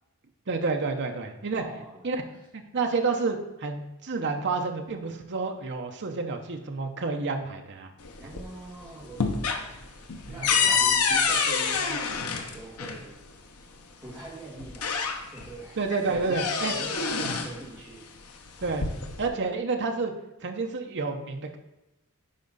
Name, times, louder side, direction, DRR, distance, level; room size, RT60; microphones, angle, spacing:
voice 1, 0.5-1.6 2.0-2.2 2.5-7.9 10.3-10.4 15.8-16.7 18.6-18.9 19.2-20.1 20.4-21.6, right 4 dB, 50° right, 4 dB, 0.7 m, -29 dB
voice 2, 1.5-2.0 2.3-2.4 8.2-13.2 13.5-13.7 14.0-15.8 16.1-18.1, right 2 dB, 5° right, -9 dB, 1.9 m, -43 dB
sound 1, 8.0-8.7 9.0-13.0 14.1-14.2 14.6-15.5 15.9-17.6 18.5-19.3, left 5 dB, 80° left, 0.9 m, -27 dB
10.5 x 4.7 x 4.0 m, 0.97 s
head